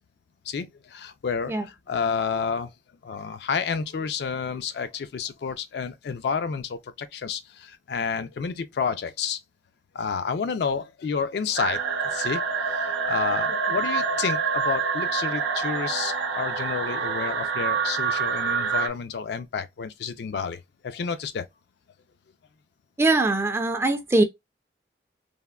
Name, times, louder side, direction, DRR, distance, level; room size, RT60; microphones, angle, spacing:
voice 1, 0.5-2.7 3.0-9.4 9.9-12.4 12.7-21.4, left 6 dB, 65° left, 0.3 m, -30 dB
sound 1, 11.6-18.9, right 5 dB, 80° right, 0.7 m, -26 dB
voice 2, 23.0-24.2, right 2 dB, 15° right, 0.3 m, -21 dB
3.4 x 2.0 x 2.2 m
head